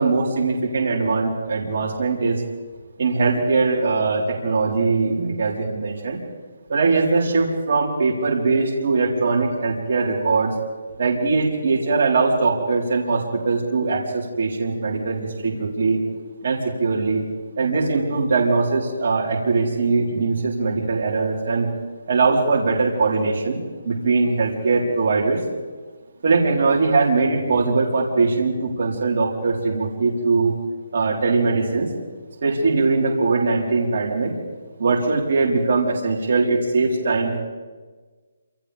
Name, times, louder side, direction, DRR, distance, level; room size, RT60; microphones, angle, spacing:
voice 1, 0.0-2.4 3.0-6.2 6.7-10.5 11.0-16.0 16.4-17.2 17.6-21.7 22.1-25.4 26.2-30.5 30.9-31.9 32.4-34.3 34.8-37.4, right 3 dB, 45° right, -5 dB, 4.3 m, -21 dB
28.5 x 27.5 x 3.6 m, 1.4 s
hypercardioid pair, 170°, 0 cm